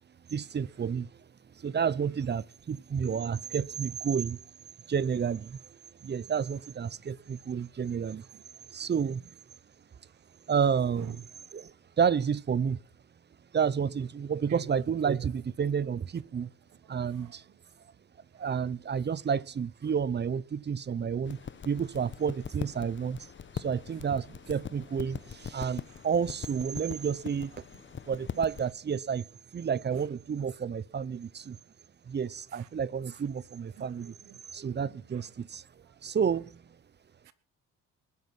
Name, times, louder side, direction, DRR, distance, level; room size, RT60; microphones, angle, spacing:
voice 1, 0.3-1.1 1.6-4.4 4.9-5.6 6.0-8.3 8.7-9.4 10.5-11.1 11.5-11.7 12.0-12.8 13.5-16.5 16.9-17.4 18.3-21.4 21.6-23.2 23.5-27.6 28.1-29.2 29.5-31.6 32.1-34.1 34.5-35.6 36.0-36.6, right 7 dB, 35° right, 0.8 m, -30 dB
voice 2, 6.0-6.4 7.5-7.7 8.3-8.4 8.7-8.9 9.9-10.2 10.9-11.2 14.3-14.7 16.8-17.6 18.3-18.5 19.3-19.4 23.9-24.1 24.9-25.5 25.9-26.1 26.8-27.0 27.7-28.4 29.9-30.1 31.1-31.2 32.5-32.7 33.7-35.3 35.8-36.0 37.2-37.3, right 9 dB, 90° right, 2.2 m, -52 dB
sound 1, 21.3-28.7, left 7 dB, 40° left, 1.0 m, -42 dB
20.5 x 9.4 x 6.0 m
cardioid pair, 90°, 30 cm